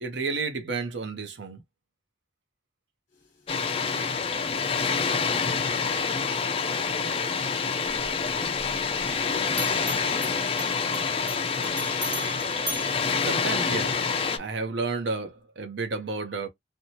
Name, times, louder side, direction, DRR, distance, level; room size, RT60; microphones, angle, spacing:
voice 1, 0.0-1.6 13.2-14.1 14.4-16.5, right 4 dB, 70° right, 0.6 m, -31 dB
voice 2, 3.1-11.5, left 1 dB, 55° left, 0.9 m, -49 dB
Water, 3.5-14.4, left 5 dB, 30° left, 0.3 m, -27 dB
Bell, 7.8-9.2 9.5-14.0, right 2 dB, 25° right, 0.5 m, -39 dB
2.7 x 2.2 x 2.9 m
head